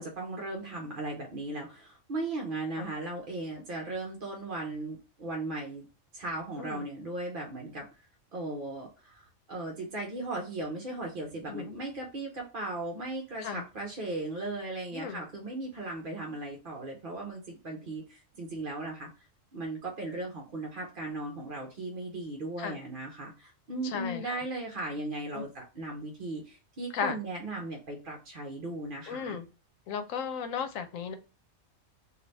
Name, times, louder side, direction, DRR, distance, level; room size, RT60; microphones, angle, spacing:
voice 1, 0.0-5.9 6.1-7.9 8.3-19.1 19.5-29.4, right 2 dB, 50° right, 0 dB, 0.7 m, -37 dB
voice 2, 23.8-24.4 25.3-25.4 26.9-27.2 29.1-29.4 29.9-31.1, left 6 dB, 90° left, 9 dB, 1.0 m, -35 dB
3.2 x 2.5 x 3.9 m, 0.33 s
omnidirectional pair, 1.3 m